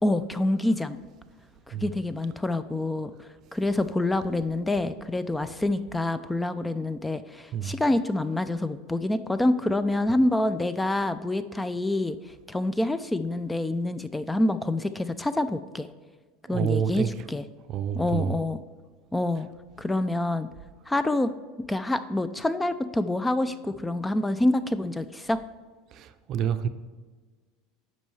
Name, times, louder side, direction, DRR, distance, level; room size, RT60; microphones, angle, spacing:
voice 1, 0.0-1.0 1.7-12.2 12.5-15.9 16.5-17.4 18.0-18.6 19.1-19.5 19.8-20.5 20.9-21.3 21.7-25.4, left 1 dB, 10° left, 13 dB, 0.3 m, -27 dB
voice 2, 16.5-17.1 17.7-18.4 25.9-26.7, right 8 dB, 50° right, 10 dB, 0.5 m, -28 dB
8.9 x 5.3 x 3.2 m, 1.4 s
supercardioid pair, 105°, 0 cm